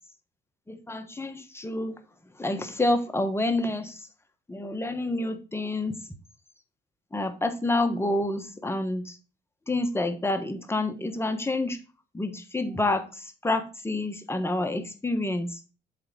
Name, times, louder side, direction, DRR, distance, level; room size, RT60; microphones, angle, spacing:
voice 1, 0.7-4.1 4.5-6.1 7.1-9.2 9.7-11.8 12.1-15.6, left 2 dB, 10° left, 7 dB, 1.2 m, -28 dB
7.8 x 3.7 x 5.3 m, 0.34 s
cardioid pair, 90°, 20 cm